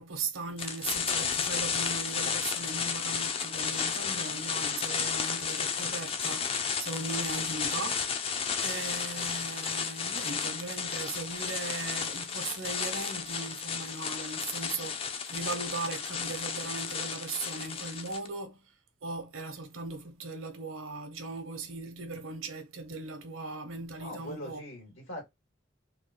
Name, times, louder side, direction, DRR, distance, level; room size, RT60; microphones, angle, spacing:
voice 1, 0.0-8.3 8.6-18.6 19.0-24.6, right 3 dB, 85° right, 0.9 m, -38 dB
sound 1, 0.6-18.3, left 6 dB, 30° left, 0.4 m, -33 dB
voice 2, 24.0-25.3, equal, 85° left, 2.1 m, -41 dB
3.7 x 2.3 x 2.9 m
head